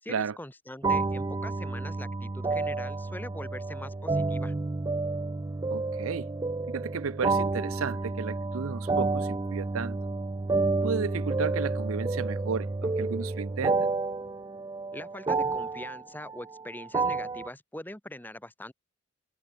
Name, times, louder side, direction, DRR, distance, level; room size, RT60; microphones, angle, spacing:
voice 1, 0.0-4.5 14.9-18.7, left 1 dB, 10° left, 1.6 m, -42 dB
sound 1, 0.8-17.5, right 3 dB, 20° right, 0.3 m, -30 dB
voice 2, 5.7-6.3 6.7-10.0 10.8-13.9, right 6 dB, 75° right, 0.5 m, -33 dB
head